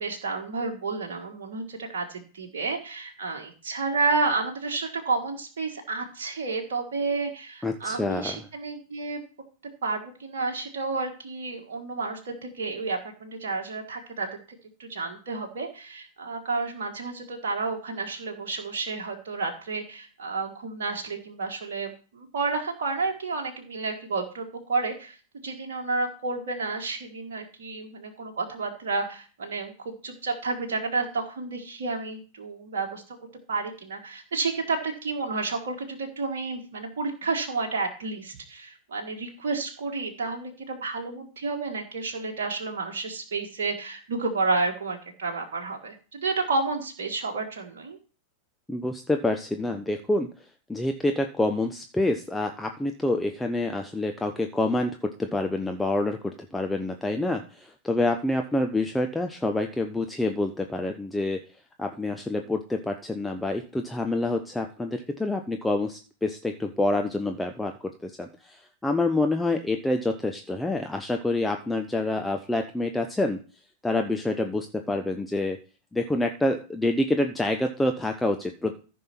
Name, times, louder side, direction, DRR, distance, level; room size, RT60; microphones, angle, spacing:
voice 1, 0.0-9.2 9.8-14.3 14.8-25.2 25.4-33.2 33.5-48.0, right 3 dB, 60° right, 2 dB, 1.6 m, -31 dB
voice 2, 7.6-8.4 48.7-50.3 50.7-61.4 61.8-73.4 73.8-75.6 75.9-78.8, left 2 dB, 5° left, 4 dB, 0.8 m, -27 dB
14.5 x 5.6 x 4.4 m, 0.37 s
figure-of-eight pair, 90°, 0 cm